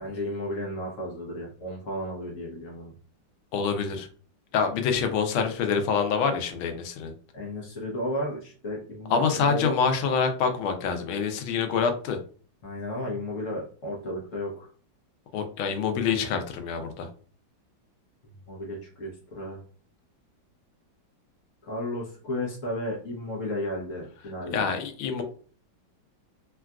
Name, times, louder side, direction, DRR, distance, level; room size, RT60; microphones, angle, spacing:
voice 1, 0.0-2.9 7.3-9.7 12.6-14.7 18.2-19.6 21.6-24.7, left 1 dB, 55° left, -2 dB, 1.0 m, -33 dB
voice 2, 3.5-4.1 4.5-7.1 9.1-12.2 15.3-17.1 24.5-25.2, left 6 dB, 85° left, 6 dB, 1.4 m, -26 dB
3.7 x 2.3 x 2.3 m, 0.42 s
omnidirectional pair, 2.2 m